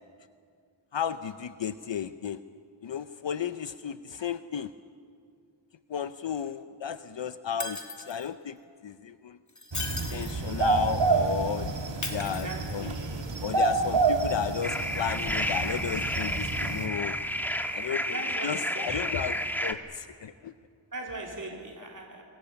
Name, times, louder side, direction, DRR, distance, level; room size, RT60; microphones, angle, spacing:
voice 1, 0.9-2.4 2.8-4.7 5.9-8.6 8.8-9.4 9.9-11.7 12.1-12.9 13.4-17.2 17.7-20.5, left 8 dB, 65° left, 12 dB, 0.7 m, -34 dB
Shatter, 7.6-8.3 9.5-10.5 12.0-13.0 15.3-15.4, left 3 dB, 35° left, 2.9 m, -37 dB
sound 1, 9.7-16.9, right 3 dB, 65° right, 2.3 m, -28 dB
voice 2, 12.2-13.3 18.1-19.0 20.9-22.2, right 2 dB, 40° right, -1 dB, 3.7 m, -39 dB
sound 2, 14.6-19.7, equal, 5° left, 1.6 m, -31 dB
27.5 x 22.0 x 7.1 m, 2.4 s
wide cardioid pair, 60°, 47 cm